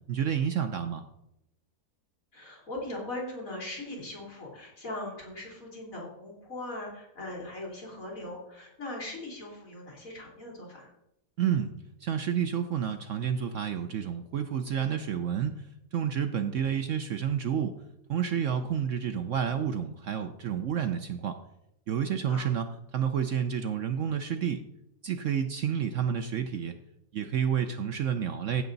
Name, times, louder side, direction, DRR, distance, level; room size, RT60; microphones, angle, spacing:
voice 1, 0.1-1.0 11.4-11.7 12.0-15.7 15.9-17.8 18.1-21.4 21.9-24.6 25.0-26.7 27.1-28.6, right 8 dB, 60° right, 8 dB, 0.9 m, -30 dB
voice 2, 2.3-10.9 18.4-18.7 22.3-22.5, left 2 dB, 55° left, -2 dB, 3.6 m, -40 dB
15.5 x 6.8 x 4.0 m, 0.83 s
omnidirectional pair, 1.7 m